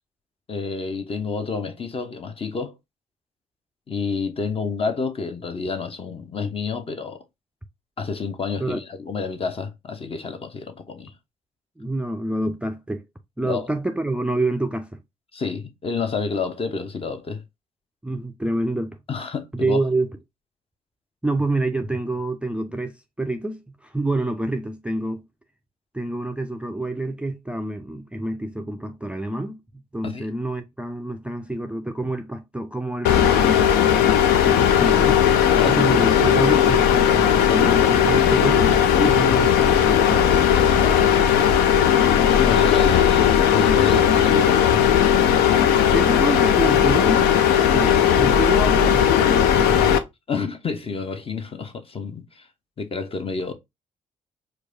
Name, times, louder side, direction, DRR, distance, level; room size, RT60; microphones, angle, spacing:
voice 1, 0.5-2.8 3.9-7.2 8.0-11.1 13.4-13.7 15.3-17.4 19.1-19.8 30.0-30.3 35.6-35.8 40.8-41.4 42.2-44.9 50.3-52.5 52.8-53.5, left 4 dB, 35° left, 0.7 m, -29 dB
voice 2, 11.8-13.0 13.4-15.0 18.0-19.0 19.5-20.1 21.2-25.3 25.9-29.6 29.9-33.7 34.4-35.2 35.6-40.4 45.9-47.3 47.6-50.0, right 2 dB, 5° right, 0.4 m, -27 dB
sound 1, 33.0-50.0, left 9 dB, 65° left, 0.4 m, -17 dB
4.5 x 2.3 x 2.5 m
figure-of-eight pair, 45°, 18 cm